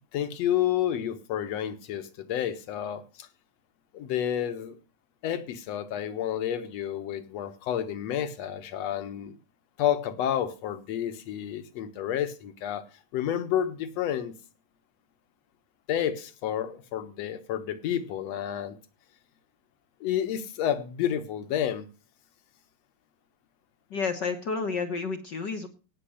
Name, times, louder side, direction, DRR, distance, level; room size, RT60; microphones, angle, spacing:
voice 1, 0.1-3.3 3.9-4.8 5.2-9.4 9.8-12.8 13.1-14.3 15.9-18.8 20.0-21.9, left 10 dB, 65° left, 2.3 m, -30 dB
voice 2, 23.9-25.7, left 4 dB, 50° left, 1.4 m, -30 dB
17.5 x 6.8 x 6.6 m
omnidirectional pair, 3.3 m